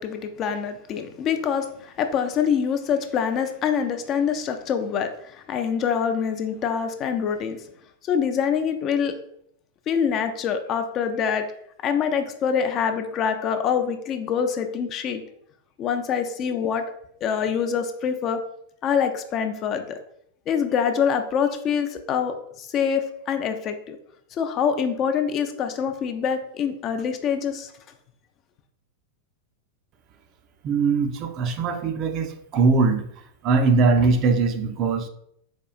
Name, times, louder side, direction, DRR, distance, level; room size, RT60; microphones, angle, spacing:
voice 1, 0.0-7.7 8.0-9.1 9.9-11.4 11.8-15.2 15.8-16.8 17.2-18.4 18.8-20.0 20.5-24.0 24.3-27.7, left 7 dB, 35° left, 7 dB, 0.3 m, -25 dB
voice 2, 30.6-33.1 33.4-35.1, right 4 dB, 35° right, 7 dB, 0.4 m, -21 dB
4.3 x 2.3 x 2.3 m, 0.70 s
figure-of-eight pair, 90°, 0 cm